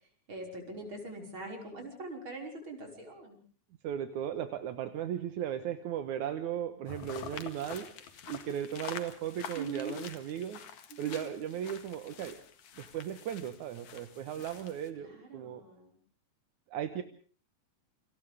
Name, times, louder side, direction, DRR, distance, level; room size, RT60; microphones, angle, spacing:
voice 1, 0.3-3.4 9.5-9.9 10.9-11.2 15.0-15.9, right 3 dB, 40° right, 2 dB, 6.3 m, -42 dB
voice 2, 3.8-7.9 8.3-10.6 11.0-12.4 12.8-15.6 16.7-17.0, right 10 dB, 80° right, 8 dB, 2.7 m, -36 dB
sound 1, 6.9-14.9, left 7 dB, 75° left, 3.3 m, -47 dB
29.0 x 26.0 x 3.6 m, 0.42 s
omnidirectional pair, 3.4 m